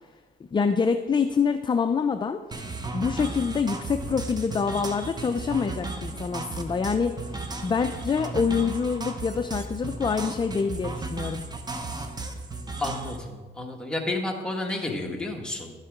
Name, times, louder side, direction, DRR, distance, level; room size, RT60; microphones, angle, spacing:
voice 1, 0.5-2.4 2.9-11.4, left 5 dB, 25° left, 8 dB, 0.4 m, -26 dB
sound 1, 2.5-13.2, right 3 dB, 20° right, 0.9 m, -35 dB
voice 2, 12.8-15.7, left 2 dB, 5° left, 0 dB, 1.6 m, -31 dB
11.5 x 7.4 x 3.6 m, 1.3 s
cardioid pair, 90°, 20 cm